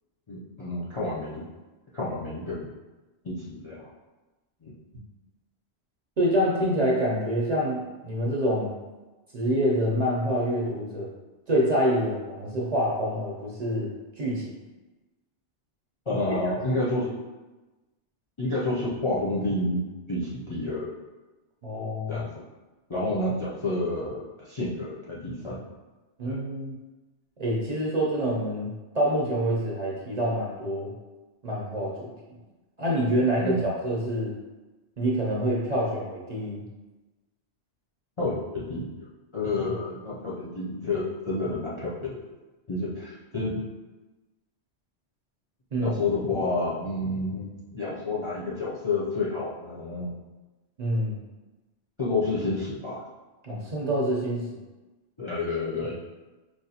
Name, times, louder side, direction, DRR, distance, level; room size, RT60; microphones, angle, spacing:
voice 1, 0.3-1.4 1.9-2.6 3.2-3.9 4.6-4.7 16.1-17.2 18.4-20.9 22.1-22.4 22.9-25.6 26.2-26.4 33.4-33.6 38.2-38.9 39.3-42.2 42.7-43.6 45.8-50.2 52.0-53.0 55.2-56.0, left 2 dB, 40° left, -7 dB, 0.5 m, -29 dB
voice 2, 6.2-7.8 8.0-8.7 9.3-11.1 11.5-13.9 14.2-14.6 21.6-22.2 26.2-26.7 27.4-30.9 31.4-32.1 32.8-34.3 35.0-36.6 45.7-45.9 50.8-51.2 53.4-54.6, equal, 45° right, -4 dB, 0.6 m, -26 dB
4.7 x 2.3 x 2.7 m, 1.1 s
omnidirectional pair, 1.1 m